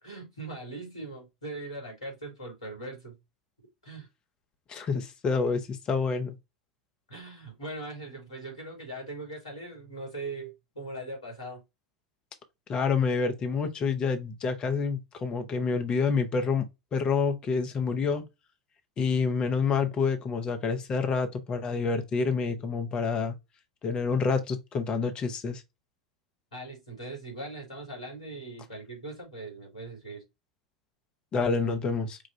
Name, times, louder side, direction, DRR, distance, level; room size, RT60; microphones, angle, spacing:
voice 1, 0.0-3.2 3.8-4.1 7.1-11.6 26.5-30.2, right 2 dB, 80° left, 3.0 m, -40 dB
voice 2, 4.7-6.4 12.7-18.2 19.0-23.3 23.8-25.6 31.3-32.2, left 5 dB, 30° left, 1.0 m, -28 dB
5.5 x 2.5 x 3.3 m
figure-of-eight pair, 80°, 3 cm